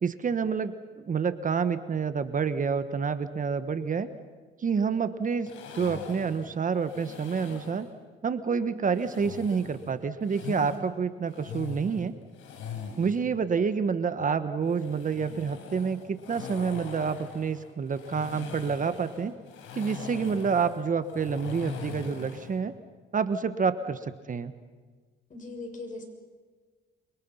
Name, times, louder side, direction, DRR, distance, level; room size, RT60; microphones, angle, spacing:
voice 1, 0.0-4.1 4.6-7.9 8.2-12.1 13.0-19.3 19.7-22.7 23.1-24.5, right 6 dB, 40° right, 11 dB, 1.3 m, -28 dB
sound 1, 5.5-7.9 8.9-10.8 11.2-13.2 14.6-22.6, left 6 dB, 80° left, 5.4 m, -41 dB
voice 2, 25.3-26.0, left 2 dB, 40° left, 3 dB, 7.3 m, -39 dB
29.0 x 24.0 x 5.7 m, 1.5 s
cardioid pair, 90°, 20 cm